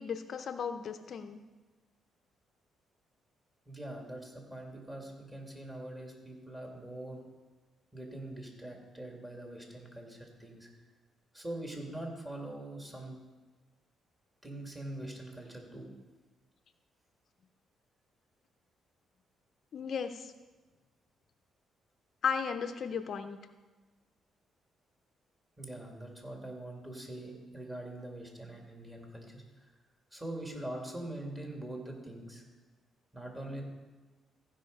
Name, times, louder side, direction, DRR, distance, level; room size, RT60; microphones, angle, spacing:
voice 1, 0.0-1.4 19.7-20.3 22.2-23.4, left 6 dB, 55° left, 9 dB, 0.5 m, -35 dB
voice 2, 3.7-7.2 7.9-10.7 11.3-13.2 14.4-15.9 25.6-29.7 30.1-32.4 33.1-33.6, right 1 dB, 15° right, 1 dB, 2.3 m, -43 dB
15.0 x 5.0 x 5.3 m, 1.2 s
cardioid pair, 90°, 0 cm